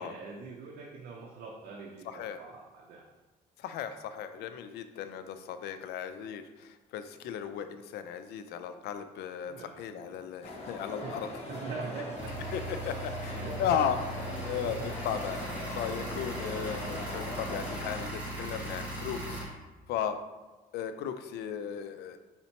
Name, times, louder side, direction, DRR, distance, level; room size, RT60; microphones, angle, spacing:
voice 1, 0.0-3.0 9.5-10.1 11.0-11.2 11.5-12.4 13.2-13.8 14.3-14.9 19.1-19.4, right 4 dB, 65° right, -2 dB, 0.7 m, -43 dB
voice 2, 2.1-2.4 3.6-11.3 12.5-14.0 14.4-14.8 15.0-15.4 15.7-19.4 19.9-20.2 20.7-22.2, left 9 dB, 75° left, 10 dB, 0.4 m, -35 dB
sound 1, 10.4-18.1, left 1 dB, 40° left, 1.1 m, -41 dB
sound 2, 12.2-19.4, right 1 dB, 10° right, 1.5 m, -38 dB
4.3 x 4.1 x 2.9 m, 1.2 s
cardioid pair, 110°, 17 cm